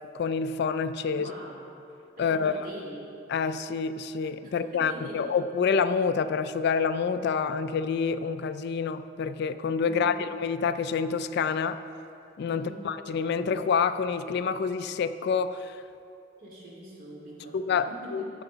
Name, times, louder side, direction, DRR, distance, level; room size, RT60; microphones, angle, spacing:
voice 1, 0.1-1.3 2.2-2.7 3.3-11.8 12.4-15.8 17.5-18.4, left 5 dB, 60° left, 12 dB, 0.3 m, -27 dB
voice 2, 1.1-1.6 2.2-3.1 4.4-5.3 9.9-10.2 12.5-12.9 16.4-18.2, equal, 50° right, -4 dB, 2.4 m, -44 dB
13.0 x 7.0 x 3.9 m, 2.7 s
head